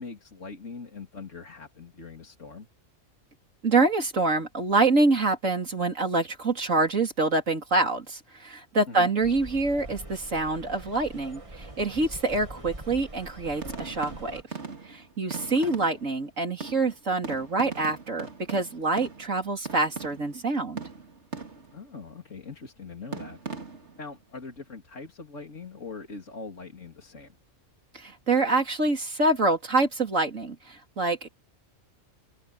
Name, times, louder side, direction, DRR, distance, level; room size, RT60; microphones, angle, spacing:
voice 1, 0.0-2.7 8.9-9.1 15.6-15.7 21.7-23.4 24.0-27.4, left 4 dB, 75° left, 3.4 m, -42 dB
voice 2, 3.6-14.4 14.8-20.8 27.9-31.3, right 3 dB, 85° right, 3.9 m, -26 dB
sound 1, 9.2-14.4, right 1 dB, 25° right, 2.3 m, -43 dB
sound 2, 13.6-16.3 16.6-20.5 20.8-21.9 23.1-24.1, right 4 dB, 65° right, 2.8 m, -40 dB
omnidirectional pair, 1.3 m